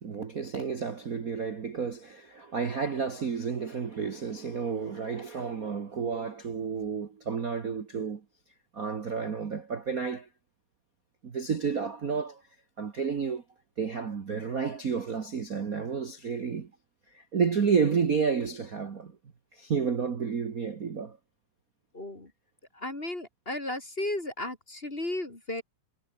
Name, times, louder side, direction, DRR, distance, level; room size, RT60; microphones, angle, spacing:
voice 1, 0.0-8.2 8.7-10.3 11.2-12.4 12.8-13.4 13.8-16.7 17.1-19.2 19.5-21.2, right 6 dB, 60° right, 0.9 m, -31 dB
voice 2, 21.9-22.3 22.7-25.6, left 1 dB, 20° left, 2.6 m, -34 dB
omnidirectional pair, 4.0 m